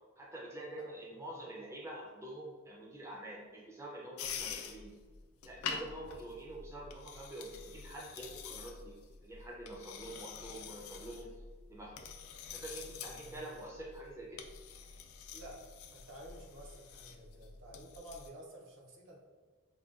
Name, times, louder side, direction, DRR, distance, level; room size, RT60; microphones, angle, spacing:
voice 1, 0.2-4.9 5.4-11.3 11.7-11.9 12.5-14.4, right 1 dB, 15° right, -3 dB, 0.4 m, -47 dB
sound 1, 4.2-18.3, left 6 dB, 90° left, 0.3 m, -46 dB
voice 2, 12.9-13.4 15.3-15.6 15.9-19.2, right 1 dB, 65° right, -1 dB, 0.6 m, -52 dB
3.8 x 2.2 x 2.4 m, 1.4 s
head